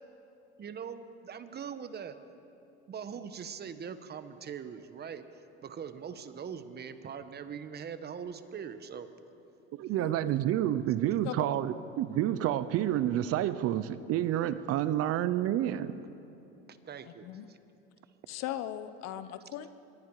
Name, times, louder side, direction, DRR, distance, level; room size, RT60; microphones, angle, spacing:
voice 1, 0.6-2.2 2.9-9.1 16.7-17.6, right 7 dB, 30° right, 11 dB, 1.4 m, -42 dB
voice 2, 9.7-16.0, right 12 dB, 50° right, 14 dB, 0.9 m, -29 dB
voice 3, 18.3-19.7, left 12 dB, 55° left, 12 dB, 1.1 m, -38 dB
25.0 x 22.0 x 4.9 m, 2.9 s
supercardioid pair, 95°, 30 cm